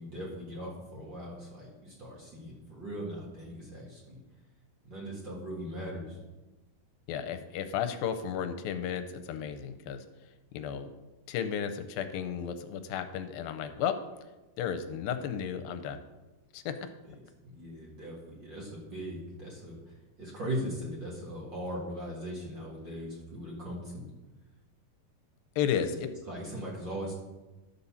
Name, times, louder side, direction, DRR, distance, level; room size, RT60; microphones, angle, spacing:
voice 1, 0.0-4.2 4.8-6.2 17.4-24.1 26.3-27.1, equal, 40° right, -5 dB, 2.1 m, -39 dB
voice 2, 7.1-10.0 10.5-10.9 11.3-13.9 14.6-16.0 16.5-16.8 25.6-26.1, left 8 dB, 85° left, 8 dB, 2.4 m, -33 dB
12.0 x 4.1 x 7.0 m, 1.1 s
omnidirectional pair, 4.2 m